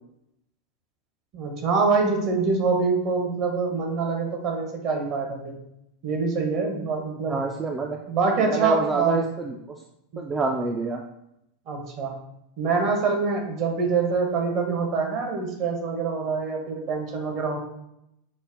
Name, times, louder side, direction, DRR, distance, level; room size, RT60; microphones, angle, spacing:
voice 1, 1.3-5.5 6.0-7.4 8.1-9.2 10.1-10.2 11.7-12.1 12.6-17.6, right 4 dB, 45° right, 2 dB, 0.8 m, -25 dB
voice 2, 7.3-8.0 8.5-9.6 10.2-11.0, right 3 dB, 25° right, 1 dB, 0.3 m, -27 dB
5.2 x 2.0 x 2.6 m, 0.81 s
figure-of-eight pair, 85°, 0 cm